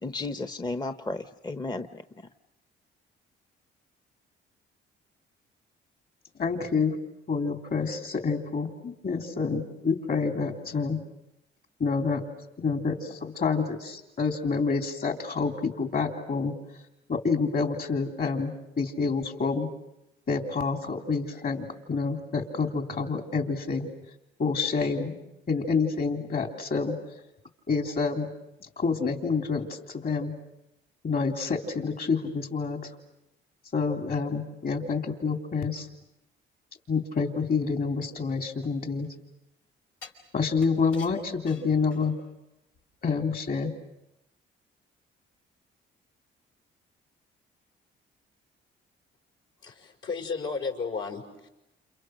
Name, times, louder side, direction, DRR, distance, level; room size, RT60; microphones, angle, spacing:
voice 1, 0.0-2.0, left 2 dB, 20° left, 9 dB, 0.9 m, -33 dB
voice 2, 6.4-7.0 7.3-11.0 11.8-12.2 12.6-16.5 17.1-19.7 20.3-23.9 24.4-25.2 25.5-27.0 27.7-28.3 28.6-30.3 31.0-32.9 33.7-35.9 36.9-39.1 40.3-42.2 43.0-43.7, left 4 dB, 50° left, 4 dB, 3.5 m, -28 dB
sound 1, 38.0-39.2 40.0-42.4 42.7-42.8, left 5 dB, 90° left, 5.5 m, -50 dB
voice 3, 49.6-51.5, left 4 dB, 70° left, 1 dB, 5.6 m, -33 dB
29.5 x 29.5 x 6.6 m, 0.88 s
cardioid pair, 90°, 20 cm